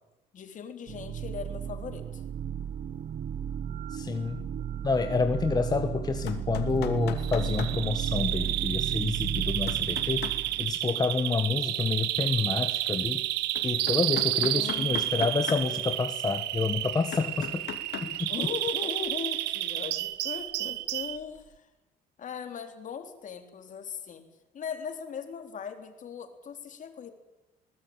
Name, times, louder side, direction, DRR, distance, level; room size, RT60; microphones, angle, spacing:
voice 1, 0.3-2.2 14.5-15.1 18.3-21.7 22.2-24.2 24.5-27.1, left 7 dB, 50° left, 6 dB, 3.9 m, -39 dB
sound 1, 0.9-10.7, right 9 dB, 50° right, 1.0 m, -34 dB
voice 2, 3.9-4.4 4.8-10.3 10.6-13.2 13.6-17.7 18.1-18.3, left 4 dB, 25° left, 7 dB, 1.4 m, -29 dB
sound 2, 6.3-7.7 9.7-10.4 13.5-15.6 16.4-16.5 17.1-18.1 21.3-21.4, left 11 dB, 80° left, 2.8 m, -37 dB
Bird vocalization bird call bird song, 7.2-21.2, right 15 dB, 85° right, 1.2 m, -31 dB
21.5 x 19.0 x 9.0 m, 1.0 s
cardioid pair, 110°, 17 cm